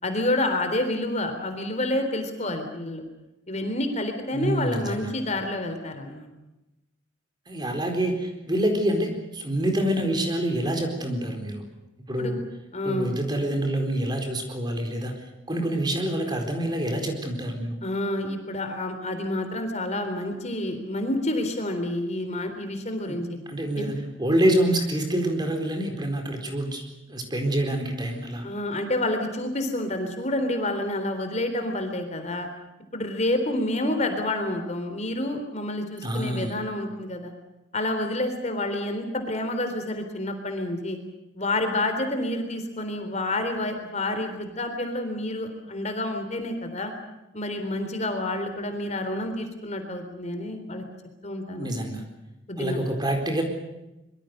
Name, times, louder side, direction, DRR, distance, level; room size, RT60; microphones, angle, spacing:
voice 1, 0.0-3.0 3.5-6.3 12.2-12.3 12.7-13.2 17.8-23.4 23.7-23.9 28.4-32.5 32.9-37.3 37.7-41.0 41.3-46.9 47.3-50.8 51.2-51.7 52.5-52.8, left 1 dB, 35° left, 6 dB, 3.7 m, -29 dB
voice 2, 4.3-5.1 7.5-11.6 12.1-12.4 12.8-15.1 15.5-17.8 23.1-23.2 23.5-28.4 36.0-36.5 51.6-52.0 52.6-53.4, right 1 dB, 20° right, 4 dB, 4.3 m, -26 dB
25.0 x 23.5 x 6.7 m, 0.96 s
head